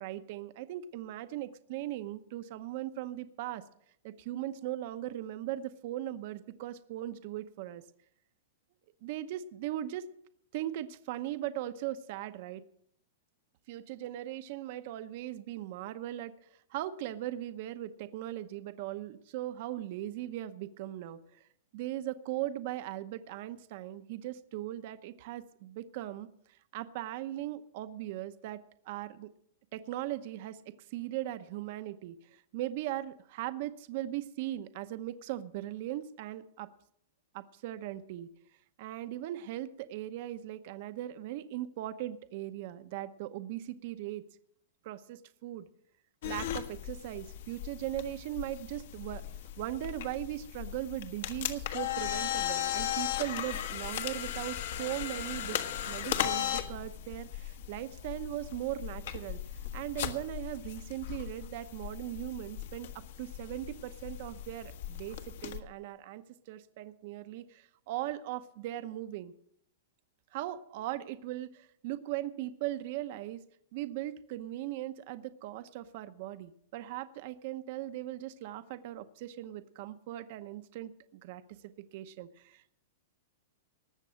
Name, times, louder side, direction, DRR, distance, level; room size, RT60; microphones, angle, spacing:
voice 1, 0.0-3.6 4.0-7.8 9.0-10.1 10.5-12.6 13.7-16.3 16.7-21.4 21.7-28.6 28.9-29.3 29.7-30.6 30.9-36.7 37.3-38.3 38.8-44.2 44.8-45.7 46.2-49.2 49.6-55.6 55.8-59.4 59.7-62.9 63.2-69.3 70.3-73.4 73.7-81.4 81.9-82.7, right 14 dB, 45° right, 11 dB, 0.8 m, -39 dB
sound 1, 46.2-65.6, left 11 dB, 65° left, 1.5 m, -37 dB
19.5 x 7.5 x 6.3 m, 0.69 s
supercardioid pair, 160°, 0 cm